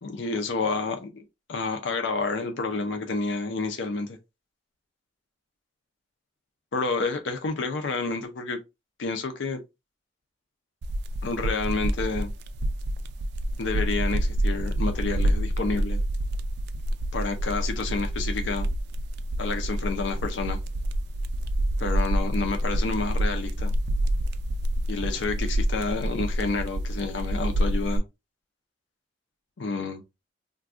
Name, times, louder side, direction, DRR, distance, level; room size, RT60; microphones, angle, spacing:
voice 1, 0.0-4.2 6.7-8.6 9.0-9.6 11.2-12.3 13.6-16.0 17.1-18.7 19.4-20.6 21.8-23.7 24.9-28.0 29.6-30.0, left 3 dB, 65° left, 0.5 m, -29 dB
sound 1, 10.8-28.0, right 1 dB, 60° right, 0.3 m, -27 dB
2.5 x 2.3 x 3.4 m
head